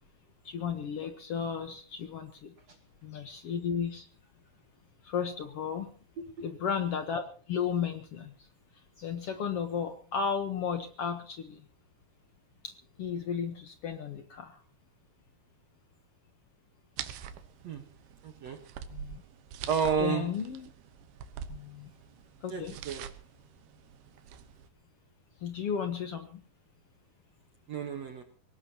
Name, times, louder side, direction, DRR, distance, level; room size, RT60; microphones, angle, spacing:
voice 1, 0.4-2.5 3.0-4.1 5.0-5.9 6.4-8.5 9.0-11.6 12.6-14.6 18.9-19.2 20.0-20.7 21.5-21.9 22.4-22.7 25.4-26.4, left 7 dB, 75° left, 8 dB, 1.3 m, -34 dB
sound 1, 17.0-24.7, right 9 dB, 85° right, 3.1 m, -45 dB
voice 2, 18.2-18.6 19.7-20.3 22.5-23.1 27.7-28.2, right 7 dB, 55° right, 5 dB, 2.0 m, -31 dB
23.0 x 19.0 x 2.9 m, 0.42 s
omnidirectional pair, 4.4 m